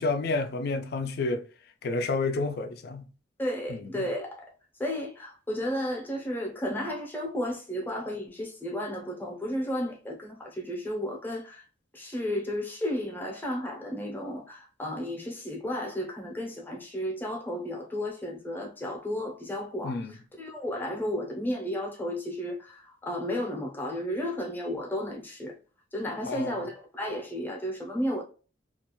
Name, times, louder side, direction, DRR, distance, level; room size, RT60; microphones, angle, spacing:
voice 1, 0.0-1.4 1.8-3.0 3.7-3.8 19.8-20.1 26.3-26.6, left 3 dB, 55° left, 0.4 m, -29 dB
voice 2, 3.4-4.5 4.8-11.6 11.9-20.0 20.4-25.6 25.9-28.2, equal, 10° left, 0.6 m, -33 dB
2.4 x 2.1 x 2.9 m
head